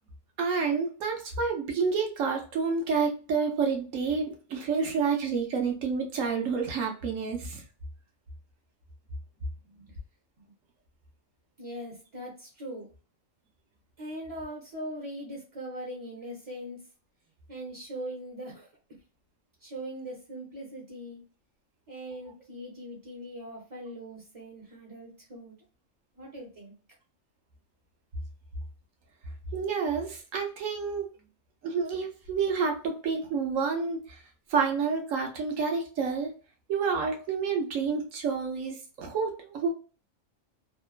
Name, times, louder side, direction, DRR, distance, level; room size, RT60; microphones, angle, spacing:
voice 1, 0.4-7.6 29.5-31.1 31.6-34.2 34.5-36.3 36.7-39.7, right 5 dB, 85° right, 2 dB, 1.1 m, -29 dB
voice 2, 9.6-10.0 11.6-12.9 14.0-16.8 17.5-18.7 19.6-21.2 21.9-25.5 26.1-26.7, equal, 35° right, -2 dB, 0.6 m, -41 dB
2.9 x 2.1 x 2.3 m, 0.35 s
omnidirectional pair, 1.3 m